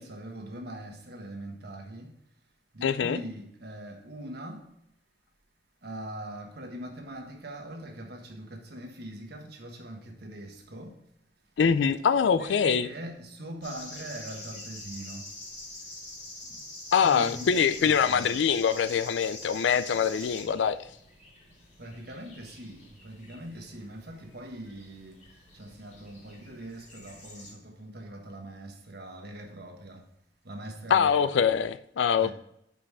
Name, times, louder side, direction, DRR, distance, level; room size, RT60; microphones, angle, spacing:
voice 1, 0.0-2.1 2.7-4.6 5.8-11.0 12.4-15.2 17.0-17.6 21.8-25.2 25.6-30.0 30.4-31.2 32.2-32.3, right 1 dB, 60° right, 1.3 m, -42 dB
voice 2, 2.8-3.2 11.6-12.9 16.9-20.8 30.9-32.3, left 7 dB, 75° left, 0.4 m, -24 dB
sound 1, 13.6-27.5, left 2 dB, 45° left, 2.9 m, -45 dB
5.5 x 5.1 x 4.7 m
head